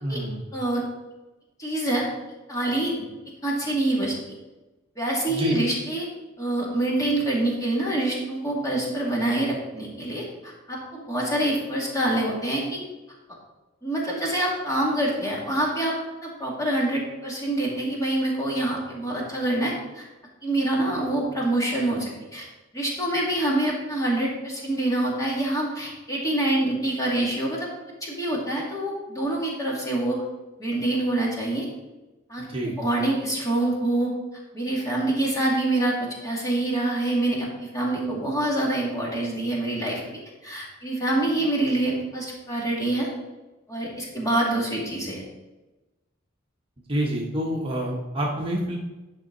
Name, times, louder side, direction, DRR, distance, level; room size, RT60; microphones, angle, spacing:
voice 1, 0.0-0.5 5.3-5.6 32.4-32.8 46.9-48.8, right 1 dB, 25° right, -2 dB, 1.1 m, -27 dB
voice 2, 0.5-0.8 1.6-2.1 2.5-2.9 3.4-4.2 5.0-6.1 6.4-12.8 13.8-15.9 16.2-20.0 20.4-22.5 22.7-27.7 28.0-30.2 30.6-31.7 32.3-34.1 34.5-40.0 40.4-43.1 43.7-45.2, right 1 dB, 15° left, -4 dB, 2.2 m, -26 dB
10.5 x 5.5 x 3.9 m, 1.1 s
head